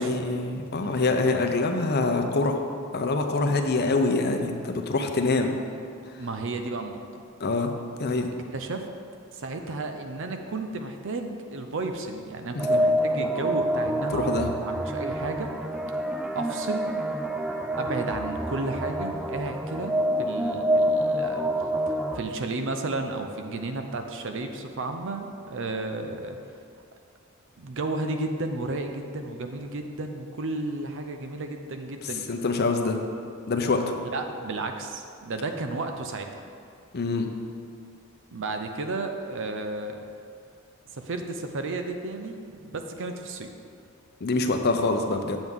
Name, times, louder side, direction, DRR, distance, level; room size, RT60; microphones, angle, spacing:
voice 1, 0.0-2.6 2.9-5.6 6.1-6.2 7.4-8.3 12.5-12.8 14.1-14.5 32.0-33.0 33.5-33.9 36.9-37.3 44.2-45.4, left 3 dB, 50° left, 5 dB, 0.6 m, -25 dB
voice 2, 6.2-7.1 8.5-8.9 9.3-15.5 16.3-16.9 17.8-19.9 20.2-21.5 22.1-26.4 27.6-32.3 34.1-36.4 38.3-40.1 40.9-43.5, right 2 dB, 60° right, 5 dB, 0.6 m, -33 dB
sound 1, 12.6-22.2, equal, 5° right, 0.3 m, -27 dB
7.9 x 7.1 x 3.6 m, 2.4 s
head